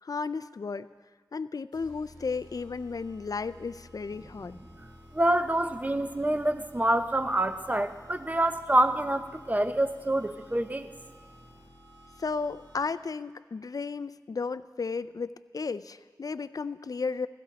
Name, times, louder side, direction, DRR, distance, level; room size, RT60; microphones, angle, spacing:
voice 1, 0.0-0.9 1.3-4.6 12.2-17.3, left 4 dB, 55° left, 14 dB, 0.4 m, -34 dB
sound 1, 1.7-13.1, left 1 dB, 90° right, 3.2 m, -54 dB
voice 2, 4.8-10.9, right 1 dB, 20° right, 9 dB, 0.8 m, -27 dB
16.0 x 13.5 x 4.0 m, 1.5 s
cardioid pair, 40°, 7 cm